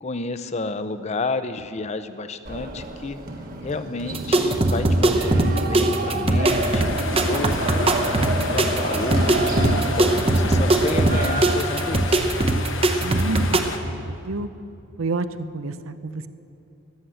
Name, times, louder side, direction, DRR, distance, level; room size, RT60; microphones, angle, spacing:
voice 1, 0.0-3.2 3.6-6.9 7.2-8.2 8.5-12.2, left 3 dB, 35° left, 11 dB, 0.5 m, -31 dB
sound 1, 2.5-12.0, right 2 dB, 45° right, 1.2 m, -29 dB
sound 2, 4.1-13.6, right 2 dB, 30° right, 0.8 m, -21 dB
sound 3, 6.4-13.8, left 4 dB, 65° left, 1.1 m, -33 dB
voice 2, 13.0-14.5 15.0-15.3 15.5-16.3, right 3 dB, 90° right, 12 dB, 0.6 m, -29 dB
13.5 x 11.0 x 7.9 m, 2.8 s
head